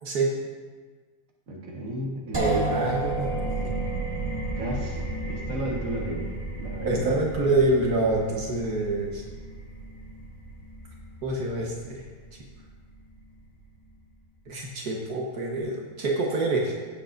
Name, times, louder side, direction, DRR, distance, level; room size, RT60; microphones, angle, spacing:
voice 1, 0.0-0.3 2.4-3.7 6.8-9.2 11.2-12.1 14.5-16.7, right 2 dB, 80° right, -1 dB, 1.8 m, -26 dB
voice 2, 1.5-2.6 4.6-6.3 6.6-7.1, right 1 dB, 60° right, -2 dB, 1.8 m, -34 dB
sound 1, 2.3-12.1, right 2 dB, 20° right, 0.9 m, -35 dB
sound 2, 2.6-14.0, right 2 dB, 20° left, 1.5 m, -36 dB
16.0 x 7.5 x 2.6 m, 1.4 s
omnidirectional pair, 1.6 m